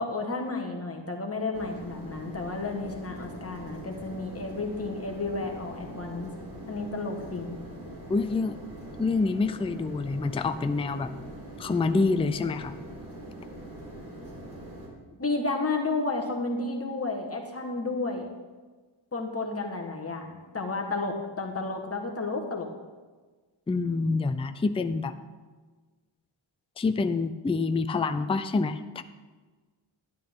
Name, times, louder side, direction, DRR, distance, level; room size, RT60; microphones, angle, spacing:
voice 1, 0.0-6.3 6.7-7.6 15.2-18.3 19.1-22.7, left 3 dB, 30° left, 2 dB, 1.4 m, -32 dB
sound 1, 1.5-14.9, right 1 dB, 50° right, 3.5 m, -43 dB
voice 2, 8.1-8.6 9.0-11.1 11.6-12.8 23.7-25.2 26.8-29.0, left 3 dB, 15° left, 10 dB, 0.3 m, -27 dB
12.0 x 10.5 x 3.6 m, 1.3 s
wide cardioid pair, 155°, 48 cm